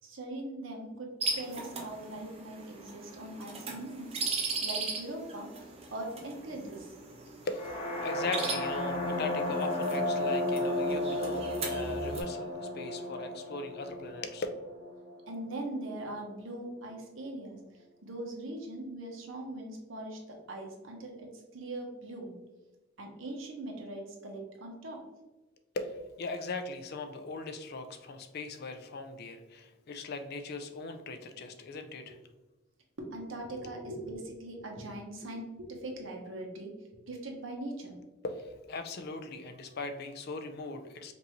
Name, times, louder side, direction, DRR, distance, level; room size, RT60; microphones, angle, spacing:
voice 1, 0.0-5.5 5.9-6.9 15.3-17.6 18.0-22.3 23.0-25.0 33.0-36.7 37.0-38.0, right 1 dB, 75° right, 1 dB, 1.0 m, -41 dB
sound 1, 1.2-12.2, right 4 dB, 30° right, 0.7 m, -39 dB
voice 2, 7.4-14.5 25.7-32.2 38.2-41.1, left 3 dB, 55° left, 7 dB, 0.4 m, -39 dB
sound 2, 7.5-15.4, left 1 dB, 30° left, 0.8 m, -33 dB
5.2 x 2.6 x 3.0 m, 1.1 s
head